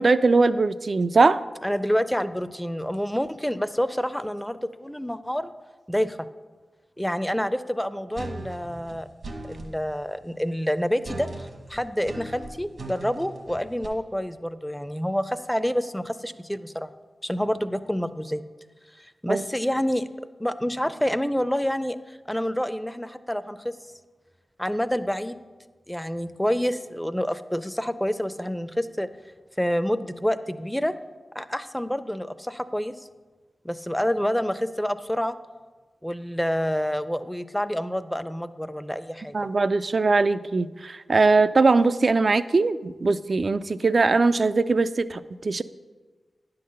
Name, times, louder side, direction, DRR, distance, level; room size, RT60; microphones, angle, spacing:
voice 1, 0.0-1.4 19.3-19.4 39.3-45.6, right 3 dB, 60° right, 14 dB, 0.3 m, -21 dB
voice 2, 1.6-5.5 5.9-6.2 7.0-9.1 9.5-16.9 17.2-18.4 19.0-20.1 20.4-23.7 24.6-25.4 25.9-29.1 29.6-30.9 31.3-33.1 33.6-35.4 36.0-39.3, equal, 5° left, 12 dB, 0.5 m, -28 dB
sound 1, 8.2-9.7 11.0-13.9, right 2 dB, 75° right, 1.4 m, -38 dB
10.0 x 3.9 x 6.5 m, 1.3 s
cardioid pair, 45°, 0 cm